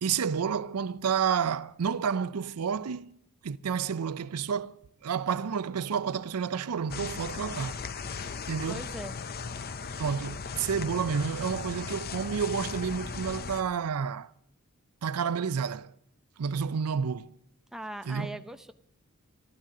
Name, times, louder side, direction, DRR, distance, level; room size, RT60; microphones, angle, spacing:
voice 1, 0.0-3.2 3.4-7.8 8.5-8.8 10.0-14.3 15.0-15.9 16.4-17.3 18.1-18.3, right 6 dB, 85° right, 0.5 m, -30 dB
sound 1, 6.9-13.6, left 5 dB, 45° left, 0.7 m, -37 dB
voice 2, 8.7-9.2 17.7-18.7, right 1 dB, ahead, 0.6 m, -40 dB
24.5 x 13.0 x 3.8 m
head